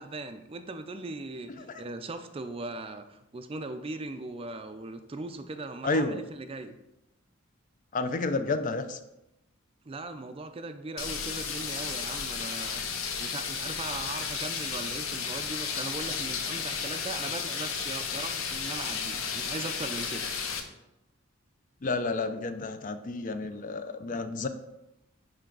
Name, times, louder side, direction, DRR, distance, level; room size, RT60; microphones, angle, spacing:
voice 1, 0.0-6.8 9.9-12.8 13.2-20.3, right 2 dB, 25° right, 9 dB, 0.4 m, -39 dB
voice 2, 5.8-6.2 7.9-9.0 21.8-24.5, left 3 dB, 40° left, 10 dB, 0.4 m, -30 dB
sound 1, 11.0-20.6, left 6 dB, 85° left, 0.8 m, -33 dB
9.8 x 3.4 x 3.8 m, 0.92 s
head